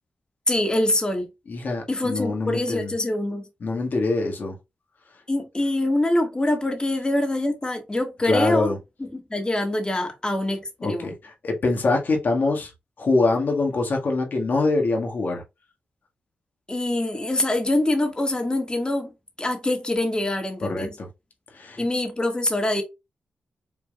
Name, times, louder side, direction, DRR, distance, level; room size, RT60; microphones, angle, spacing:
voice 1, 0.5-1.3 1.9-3.4 5.3-8.7 9.0-11.1 16.7-21.0 21.8-22.8, left 1 dB, 25° left, 1.8 m, -24 dB
voice 2, 1.5-2.9 3.6-4.5 8.2-8.8 10.8-12.7 13.0-15.4 20.6-21.1 21.5-21.8, left 3 dB, 60° left, 1.8 m, -24 dB
6.0 x 3.4 x 2.4 m
supercardioid pair, 50°, 4 cm